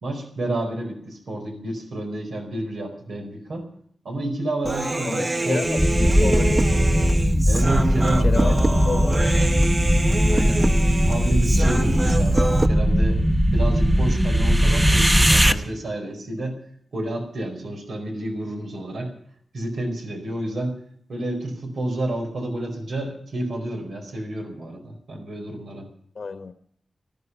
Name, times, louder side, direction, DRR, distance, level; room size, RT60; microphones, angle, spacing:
voice 1, 0.0-3.7 4.0-5.8 7.5-8.7 10.3-10.6 11.0-13.2 13.5-16.6 16.9-19.1 19.5-20.8 21.1-25.9, right 1 dB, 85° right, 2 dB, 4.7 m, -30 dB
Human voice, 4.6-12.7, right 1 dB, 30° right, 1.3 m, -26 dB
voice 2, 5.0-6.7 8.2-8.6 8.9-9.1 26.1-26.5, left 4 dB, 60° left, 8 dB, 1.2 m, -30 dB
sound 1, 5.8-15.5, equal, 10° right, 1.0 m, -19 dB
19.5 x 13.0 x 5.6 m, 0.64 s
wide cardioid pair, 125°, 0 cm